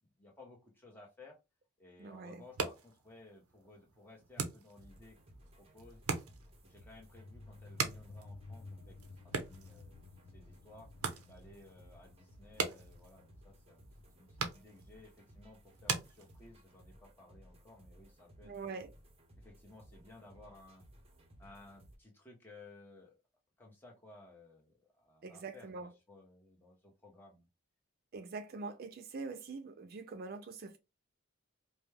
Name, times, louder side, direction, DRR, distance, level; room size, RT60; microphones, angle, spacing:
voice 1, 0.0-1.4 1.8-5.2 5.6-6.0 6.6-10.1 10.3-10.9 11.2-13.8 14.1-18.8 19.4-20.8 21.4-23.1 23.6-27.5, left 2 dB, 10° left, 1.2 m, -58 dB
voice 2, 2.0-2.4 18.4-18.9 25.2-25.9 28.1-30.8, right 4 dB, 45° right, 0.4 m, -44 dB
sound 1, 2.3-16.8, right 5 dB, 85° right, 0.8 m, -43 dB
sound 2, 4.8-22.0, equal, 25° right, 0.9 m, -60 dB
sound 3, 6.8-17.9, left 3 dB, 90° left, 0.5 m, -56 dB
5.0 x 2.3 x 3.4 m
head